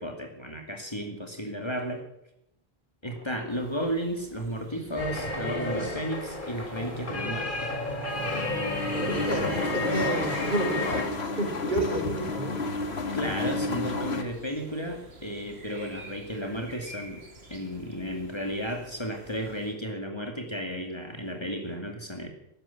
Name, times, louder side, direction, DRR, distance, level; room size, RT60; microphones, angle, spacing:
voice 1, 0.0-2.0 3.0-7.7 13.1-17.2 17.5-22.3, equal, 25° left, 3 dB, 2.4 m, -33 dB
sound 1, 3.5-19.7, right 1 dB, 75° right, 2.8 m, -50 dB
sound 2, 5.0-11.0, left 2 dB, 50° left, 3.5 m, -32 dB
sound 3, 8.1-14.2, left 3 dB, 80° left, 1.9 m, -32 dB
voice 2, 9.0-12.6, right 1 dB, 50° right, 2 dB, 4.2 m, -30 dB
14.5 x 12.5 x 7.3 m, 0.79 s
omnidirectional pair, 1.1 m